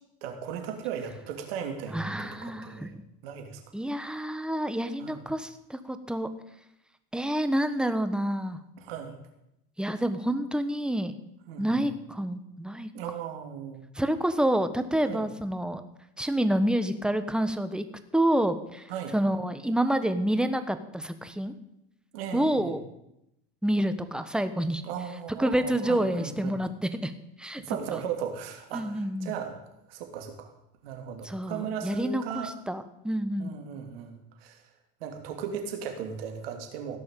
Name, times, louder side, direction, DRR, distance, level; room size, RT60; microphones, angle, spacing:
voice 1, 0.2-2.9 3.2-3.6 5.0-5.2 8.8-9.2 11.5-11.9 12.9-13.8 15.1-15.2 18.9-19.2 22.1-22.7 24.8-26.6 27.6-29.6 29.9-30.5 30.8-32.5 33.4-34.6 35.0-37.0, right 8 dB, 80° right, 5 dB, 2.9 m, -37 dB
voice 2, 1.9-2.9 3.7-6.3 7.1-8.6 9.8-11.1 11.6-12.9 13.9-15.8 16.2-17.9 18.1-18.8 19.1-21.5 22.3-22.8 23.6-24.8 25.4-26.7 27.0-27.1 27.4-27.6 28.7-29.3 31.2-33.5, right 1 dB, 5° right, 10 dB, 1.3 m, -28 dB
16.0 x 6.2 x 9.1 m, 0.84 s
supercardioid pair, 105°, 29 cm